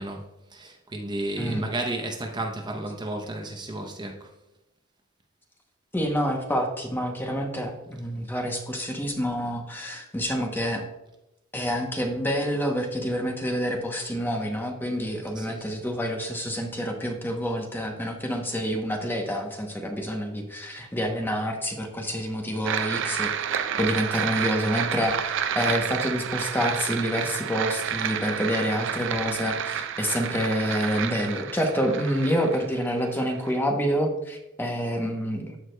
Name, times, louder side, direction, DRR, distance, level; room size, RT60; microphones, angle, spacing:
voice 1, 0.0-4.3 15.4-15.6, right 2 dB, 20° right, 0.7 m, -33 dB
voice 2, 5.9-10.8 11.5-23.3 23.8-35.6, equal, 10° left, 0.8 m, -28 dB
sound 1, 22.6-33.6, right 8 dB, 60° right, 0.4 m, -30 dB
14.0 x 4.8 x 2.2 m
head